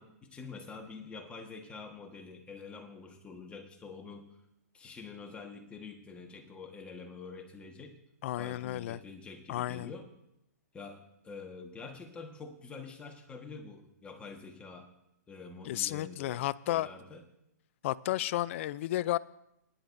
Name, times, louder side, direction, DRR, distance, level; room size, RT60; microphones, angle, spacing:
voice 1, 0.0-4.4 4.7-8.0 8.4-10.1 10.7-14.9 15.3-16.4 16.7-17.2, left 4 dB, 10° left, 3 dB, 1.4 m, -46 dB
voice 2, 8.2-9.0 9.5-9.9 15.7-16.9 17.8-19.2, left 15 dB, 45° left, 18 dB, 0.4 m, -32 dB
24.0 x 10.0 x 2.6 m, 0.82 s
hypercardioid pair, 140°, 10 cm